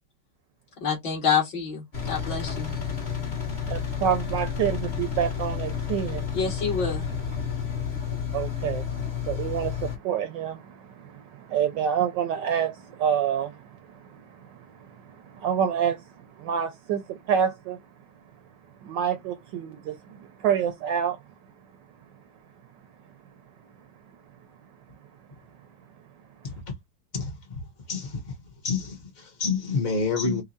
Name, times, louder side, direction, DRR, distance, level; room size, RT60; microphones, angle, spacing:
voice 1, 0.8-2.7 6.3-7.1, left 6 dB, 60° left, 2.5 m, -27 dB
Engine, 1.9-10.0, left 7 dB, 30° left, 0.9 m, -31 dB
voice 2, 3.6-6.2 8.3-8.9 9.2-17.8 18.8-21.2, right 8 dB, 75° right, 1.1 m, -28 dB
voice 3, 27.1-27.6 27.9-28.4 28.6-30.4, left 4 dB, 80° left, 0.4 m, -28 dB
5.4 x 2.1 x 2.6 m
omnidirectional pair, 2.3 m